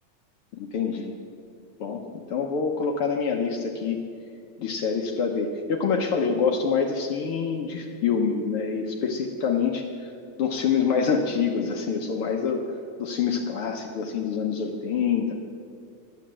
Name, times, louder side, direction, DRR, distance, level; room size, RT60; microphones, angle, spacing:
voice 1, 0.5-1.2 1.8-4.1 4.6-10.1 10.4-12.7 13.0-15.3, left 6 dB, 70° left, 2 dB, 1.4 m, -26 dB
13.0 x 8.9 x 7.4 m, 2.3 s
omnidirectional pair, 3.5 m